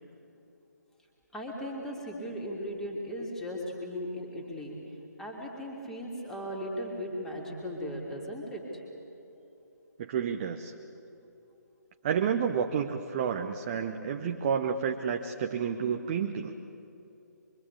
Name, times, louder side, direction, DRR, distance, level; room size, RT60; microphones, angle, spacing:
voice 1, 1.3-4.8 5.2-8.6, equal, 5° left, -2 dB, 3.2 m, -37 dB
voice 2, 10.0-10.7 12.0-16.5, right 7 dB, 25° right, 4 dB, 0.9 m, -30 dB
24.5 x 24.0 x 8.5 m, 2.9 s
figure-of-eight pair, 140°, 10 cm